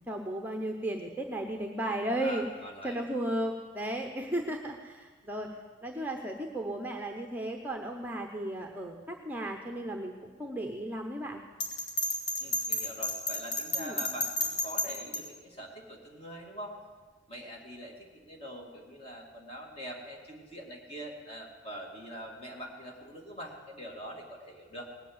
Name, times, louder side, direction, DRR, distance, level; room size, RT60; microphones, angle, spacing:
voice 1, 0.1-2.4 2.8-5.5 5.8-11.4 13.8-14.0, right 1 dB, 10° right, 2 dB, 0.8 m, -35 dB
voice 2, 2.2-3.0 12.4-16.8 17.3-24.9, equal, 30° left, 0 dB, 2.3 m, -44 dB
Bell, 11.6-15.2, left 2 dB, 60° left, 2.7 m, -31 dB
19.0 x 8.2 x 7.9 m, 1.5 s
head